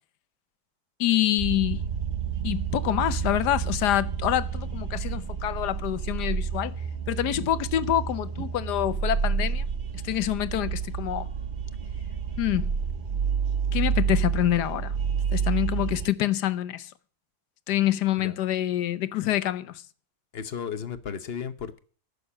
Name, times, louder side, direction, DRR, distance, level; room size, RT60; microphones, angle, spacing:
voice 1, 1.0-1.8 2.4-6.7 7.1-9.6 10.0-11.3 12.4-12.7 13.7-14.9 15.3-16.9 17.7-19.8, left 13 dB, 80° left, 1.3 m, -26 dB
sound 1, 1.4-16.1, right 6 dB, 50° right, 0.6 m, -29 dB
voice 2, 20.3-21.8, left 7 dB, 50° left, 0.9 m, -34 dB
11.5 x 6.8 x 8.5 m
omnidirectional pair, 1.7 m